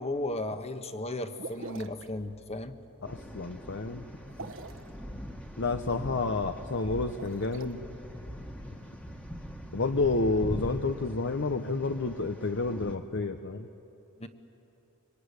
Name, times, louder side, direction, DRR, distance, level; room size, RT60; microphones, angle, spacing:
voice 1, 0.0-2.8 4.4-4.5 14.2-14.3, left 1 dB, 30° left, 8 dB, 1.2 m, -35 dB
sound 1, 1.4-2.1 4.3-4.9 7.0-7.7, right 3 dB, 65° right, 1.3 m, -43 dB
voice 2, 3.0-4.1 5.6-7.8 9.7-13.7, left 3 dB, 60° left, 7 dB, 0.9 m, -30 dB
sound 2, 3.0-13.0, equal, 5° left, 1.7 m, -42 dB
25.5 x 23.5 x 9.7 m, 2.9 s
head